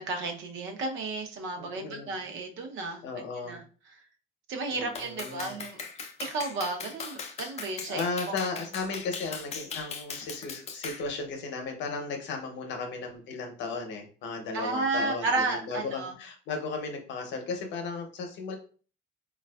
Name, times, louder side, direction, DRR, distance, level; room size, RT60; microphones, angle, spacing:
voice 1, 0.0-3.0 3.4-3.6 4.5-5.8 6.2-8.3 14.5-16.1, right 3 dB, 65° right, 3 dB, 0.6 m, -32 dB
voice 2, 1.6-2.1 3.0-3.6 4.7-5.6 7.9-18.6, left 4 dB, 60° left, 4 dB, 0.7 m, -35 dB
Clapping, 4.9-11.1, left 5 dB, 30° left, 0.4 m, -39 dB
4.0 x 2.3 x 2.2 m, 0.40 s
cardioid pair, 175°, 21 cm